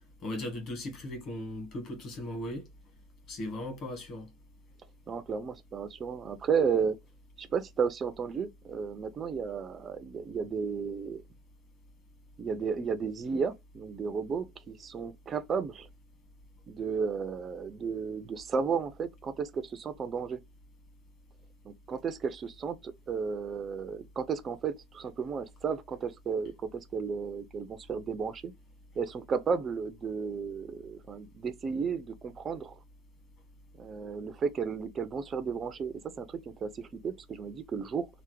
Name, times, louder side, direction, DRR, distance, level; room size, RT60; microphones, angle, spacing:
voice 1, 0.2-2.7 3.3-4.3, left 1 dB, 30° left, 1.2 m, -37 dB
voice 2, 5.1-7.0 7.4-11.2 12.4-15.9 16.7-20.4 21.6-28.5 29.0-32.8 33.8-38.1, right 6 dB, 20° right, 0.3 m, -33 dB
3.3 x 2.0 x 3.0 m
supercardioid pair, 170°, 0 cm